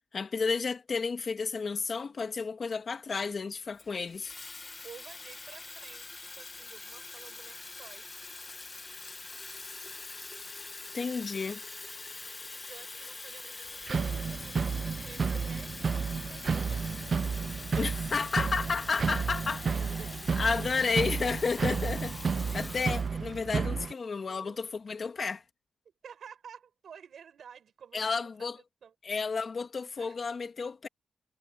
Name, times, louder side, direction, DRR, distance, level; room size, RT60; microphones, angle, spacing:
voice 1, 0.1-4.3 10.9-11.6 17.8-19.6 20.3-25.4 27.9-28.6 29.0-30.9, left 5 dB, 45° left, 2.5 m, -32 dB
Water tap faucet / Fill (with liquid), 3.8-23.5, left 3 dB, 25° left, 1.6 m, -44 dB
voice 2, 4.8-8.2 12.6-16.8 19.2-21.1 22.3-22.9 23.4-23.5 24.2-24.6 26.0-28.9 30.0-30.3, right 7 dB, 70° right, 5.9 m, -52 dB
sound 1, 13.9-23.9, right 5 dB, 45° right, 0.6 m, -32 dB
wide cardioid pair, 140°, 0 cm